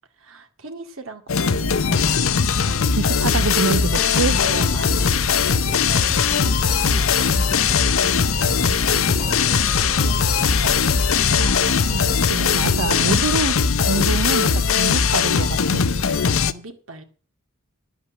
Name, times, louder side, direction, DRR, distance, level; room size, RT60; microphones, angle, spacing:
voice 1, 0.2-2.2 2.6-3.3 3.7-5.2 5.6-6.1 6.4-7.1 7.6-8.3 8.6-10.8 11.5-11.8 12.7-13.4 16.0-17.0, right 2 dB, 70° right, 2.2 m, -38 dB
sound 1, 1.3-16.5, left 6 dB, 75° left, 0.8 m, -19 dB
voice 2, 3.0-4.4 11.4-15.8, right 4 dB, 90° right, 0.7 m, -26 dB
sound 2, 4.2-11.3, equal, 5° right, 2.7 m, -43 dB
sound 3, 4.3-13.7, left 2 dB, 30° left, 0.6 m, -32 dB
11.0 x 8.4 x 7.1 m
head